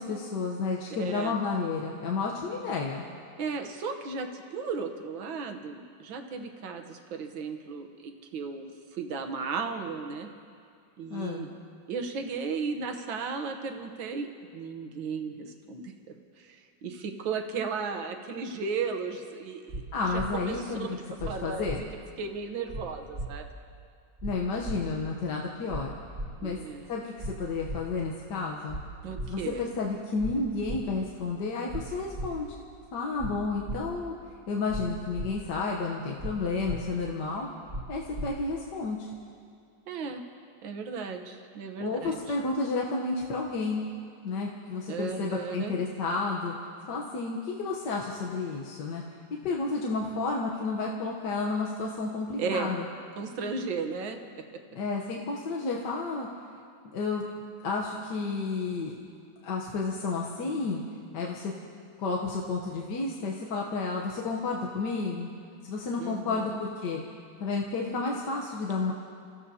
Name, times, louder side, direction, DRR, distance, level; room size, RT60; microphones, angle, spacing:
voice 1, 0.0-3.1 11.1-11.5 19.9-20.9 21.2-21.8 24.2-25.9 26.4-26.6 26.9-28.8 29.3-32.5 32.9-34.1 34.5-37.5 37.9-39.1 41.8-43.8 44.2-46.5 46.9-49.0 49.4-52.8 54.7-56.3 56.9-57.2 57.6-58.9 59.4-60.8 61.1-61.5 62.0-65.3 65.6-67.0 67.4-68.9, left 3 dB, 60° left, -1 dB, 1.6 m, -31 dB
voice 2, 1.0-1.4 3.4-10.3 11.0-11.5 11.9-14.3 14.5-15.9 16.4-19.8 20.4-20.9 21.3-21.7 22.2-23.5 26.4-26.9 29.0-29.6 39.9-40.2 40.6-42.4 44.9-45.7 52.4-52.8 53.2-54.2 66.0-66.6, right 5 dB, 75° right, 5 dB, 1.8 m, -35 dB
sound 1, 19.7-19.8 20.1-20.3 21.2-21.3 21.6-21.8 22.7-22.8 23.1-23.3 24.2-24.3 24.6-24.8 25.7-25.8 26.1-26.3 27.2-27.3 27.6-27.8 28.7-28.8 29.1-29.3 30.2-30.3 30.6-30.8 31.7-31.8 32.1-32.3 33.2-33.3 33.6-33.8 34.7-34.8 35.1-35.3 36.2-36.3 36.6-36.8 37.7-37.8 38.1-38.3, right 1 dB, 35° right, 1.6 m, -35 dB
29.0 x 15.0 x 2.8 m, 2.3 s
omnidirectional pair, 2.2 m